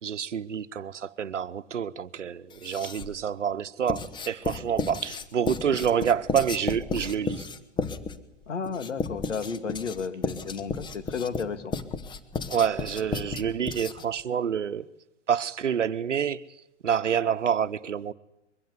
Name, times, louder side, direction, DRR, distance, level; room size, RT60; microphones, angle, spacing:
voice 1, 0.0-7.5 12.5-14.9 15.3-18.1, right 8 dB, 80° right, 1.0 m, -28 dB
Writing, 2.5-3.2 3.9-14.2, left 5 dB, 10° left, 1.1 m, -33 dB
voice 2, 8.5-11.7, left 5 dB, 80° left, 2.2 m, -33 dB
22.5 x 16.0 x 9.7 m
hypercardioid pair, 125°, 36 cm